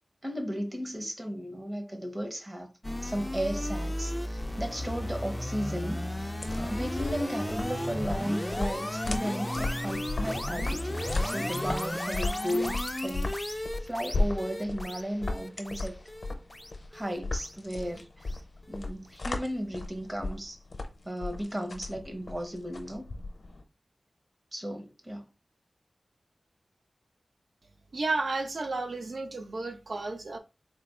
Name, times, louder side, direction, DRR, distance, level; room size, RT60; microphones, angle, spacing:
voice 1, 0.2-2.7 3.0-16.0 16.9-18.4 18.7-20.6 21.0-23.1 24.5-25.3, equal, 25° right, 0.8 m, -35 dB
sound 1, 2.8-18.0, left 1 dB, 15° left, 0.4 m, -34 dB
sound 2, 6.4-23.6, left 2 dB, 70° left, 0.7 m, -36 dB
voice 2, 27.9-30.4, right 3 dB, 70° right, 0.5 m, -32 dB
3.9 x 2.3 x 3.6 m
wide cardioid pair, 85°, 0 cm